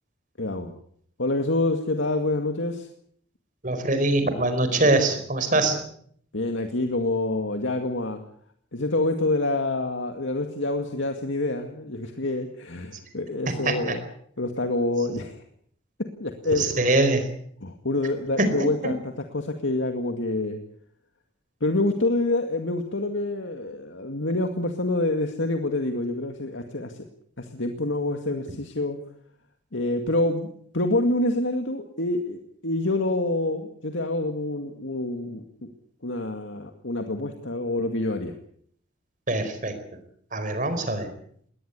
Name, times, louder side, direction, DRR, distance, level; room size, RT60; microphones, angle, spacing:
voice 1, 0.4-0.8 1.2-2.9 6.3-8.2 8.7-14.0 14.4-15.4 16.2-16.8 17.6-19.0 19.3-20.6 21.6-27.0 27.4-29.0 29.7-30.5 30.7-35.7 36.0-38.3, left 2 dB, 80° left, 5 dB, 2.1 m, -27 dB
voice 2, 3.6-5.8 12.9-13.0 13.5-14.0 15.1-15.2 16.5-17.3 18.4-18.7 39.3-39.8 40.3-41.1, right 2 dB, 40° right, 9 dB, 4.5 m, -23 dB
21.5 x 19.0 x 8.3 m, 0.63 s
head